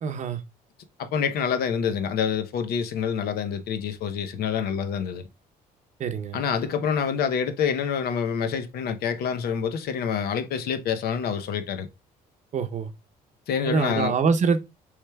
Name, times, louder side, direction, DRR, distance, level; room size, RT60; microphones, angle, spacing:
voice 1, 0.0-0.4 6.0-6.4 12.5-12.9 13.7-14.6, right 5 dB, 45° right, 0.7 m, -24 dB
voice 2, 1.0-5.3 6.3-11.9 13.5-14.1, left 7 dB, 65° left, 0.7 m, -27 dB
6.4 x 3.3 x 2.3 m
cardioid pair, 110°, 17 cm